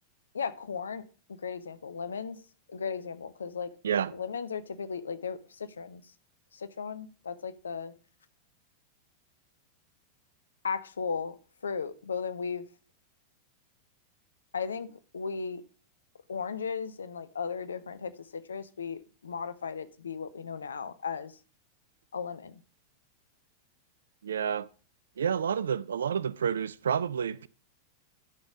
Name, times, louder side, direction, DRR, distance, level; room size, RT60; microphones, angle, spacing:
voice 1, 0.3-1.0 1.4-2.4 2.7-3.7 4.1-6.0 6.5-7.9 10.6-11.3 11.6-12.6 14.5-15.6 16.3-21.3 22.1-22.6, left 6 dB, 70° left, 0.5 m, -36 dB
voice 2, 24.2-24.7 25.2-27.5, right 7 dB, 65° right, 0.3 m, -29 dB
10.5 x 4.0 x 4.9 m
figure-of-eight pair, 90°, 0 cm